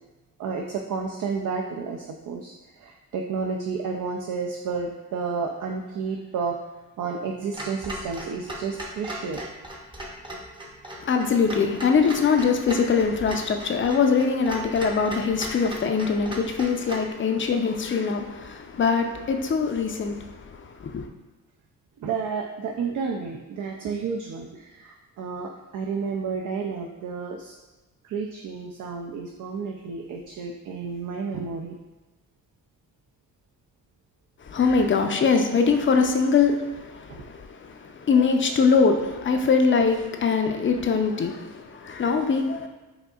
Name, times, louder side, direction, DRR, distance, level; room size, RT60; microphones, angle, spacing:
voice 1, 0.4-6.6 7.0-9.6 22.0-27.5 28.0-31.8 37.1-37.2, right 5 dB, 60° right, 1 dB, 0.5 m, -31 dB
Clock, 7.5-17.1, right 1 dB, 15° right, 0.7 m, -38 dB
voice 2, 11.0-21.1 34.4-42.7, left 5 dB, 35° left, 5 dB, 0.5 m, -23 dB
5.0 x 2.7 x 2.4 m, 1.1 s
cardioid pair, 60°, 37 cm